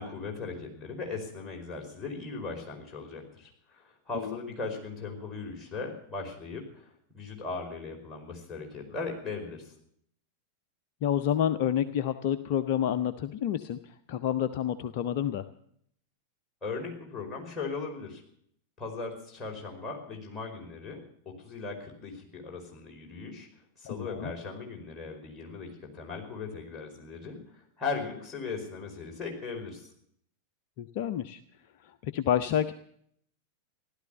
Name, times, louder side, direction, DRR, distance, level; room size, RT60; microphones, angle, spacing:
voice 1, 0.0-9.7 16.6-18.2 18.8-23.5 23.8-29.9, left 4 dB, 15° left, -1 dB, 4.9 m, -38 dB
voice 2, 11.0-13.8 14.1-15.4 23.9-24.3 30.8-31.4 32.0-32.7, left 10 dB, 50° left, 11 dB, 0.7 m, -29 dB
15.5 x 12.0 x 7.0 m, 0.66 s
figure-of-eight pair, 90°, 0 cm